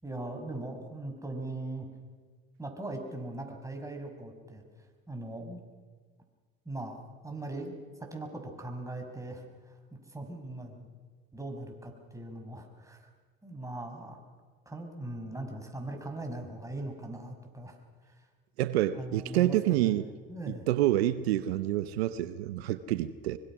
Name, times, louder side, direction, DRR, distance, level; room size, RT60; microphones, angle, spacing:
voice 1, 0.0-1.9 2.6-4.6 5.1-5.6 6.7-10.9 11.3-13.0 13.4-14.2 14.7-17.8 18.9-20.0 20.3-20.7, right 2 dB, 10° right, 5.7 m, -40 dB
voice 2, 18.6-20.0 20.5-23.4, right 14 dB, 90° right, 0.9 m, -28 dB
24.0 x 23.5 x 6.2 m
hypercardioid pair, 75°, 30 cm